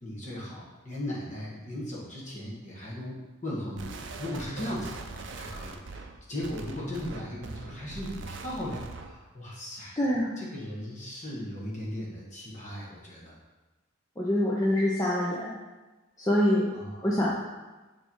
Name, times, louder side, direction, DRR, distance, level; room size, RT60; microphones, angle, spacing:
voice 1, 0.0-3.2 3.4-10.0 10.4-13.4 16.7-17.1, left 1 dB, 35° left, -5 dB, 1.6 m, -37 dB
sound 1, 3.8-9.2, right 3 dB, 60° right, 0.5 m, -42 dB
voice 2, 10.0-10.3 14.2-15.5 16.2-16.7 17.0-17.3, left 1 dB, 15° left, -6 dB, 0.7 m, -25 dB
6.7 x 3.3 x 4.6 m, 1.2 s
head